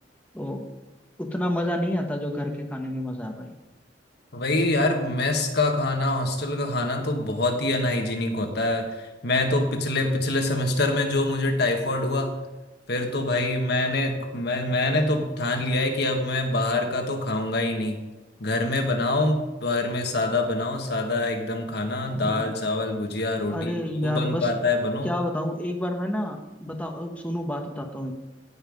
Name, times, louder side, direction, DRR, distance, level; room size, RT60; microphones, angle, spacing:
voice 1, 1.2-3.5 22.1-22.5 23.5-24.5 25.0-28.1, left 1 dB, 10° left, 2 dB, 1.0 m, -29 dB
voice 2, 4.3-12.4 12.9-18.0 18.4-23.7 24.0-25.1, left 2 dB, 60° left, 4 dB, 1.5 m, -25 dB
16.5 x 5.7 x 5.3 m, 1.1 s
head